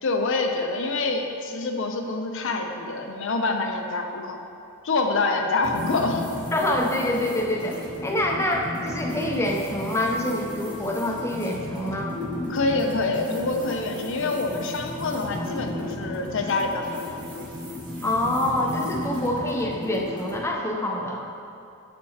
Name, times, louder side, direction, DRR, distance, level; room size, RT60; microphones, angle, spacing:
voice 1, 0.0-4.4 4.8-6.2 12.5-17.0, left 3 dB, 60° left, 4 dB, 0.6 m, -26 dB
sound 1, 5.6-20.4, left 1 dB, 20° right, 1.1 m, -34 dB
voice 2, 6.5-12.1 18.0-21.3, left 1 dB, 10° left, 0 dB, 0.6 m, -26 dB
7.6 x 7.5 x 2.8 m, 2.6 s
head